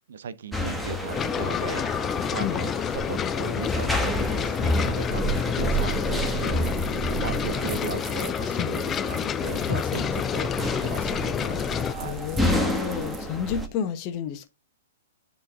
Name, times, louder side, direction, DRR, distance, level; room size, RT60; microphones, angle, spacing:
voice 1, 0.1-12.2, right 7 dB, 65° right, 0.6 m, -37 dB
sound 1, 0.5-13.7, equal, ahead, 1.2 m, -30 dB
sound 2, 1.1-11.9, left 8 dB, 20° left, 0.3 m, -28 dB
sound 3, 3.6-13.3, right 6 dB, 25° right, 1.3 m, -48 dB
voice 2, 12.0-14.5, left 8 dB, 35° left, 1.2 m, -30 dB
10.0 x 3.8 x 3.7 m
figure-of-eight pair, 115°, 0 cm